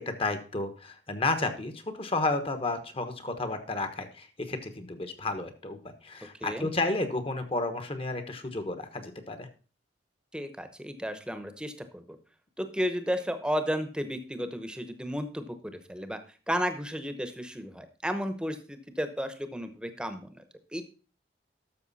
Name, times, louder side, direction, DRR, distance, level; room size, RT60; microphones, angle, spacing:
voice 1, 0.0-9.5, left 2 dB, 35° left, 8 dB, 1.2 m, -32 dB
voice 2, 10.3-12.0 12.6-16.2 16.5-20.4 20.7-20.8, equal, 5° right, 9 dB, 1.0 m, -33 dB
12.5 x 6.6 x 4.1 m, 0.38 s
head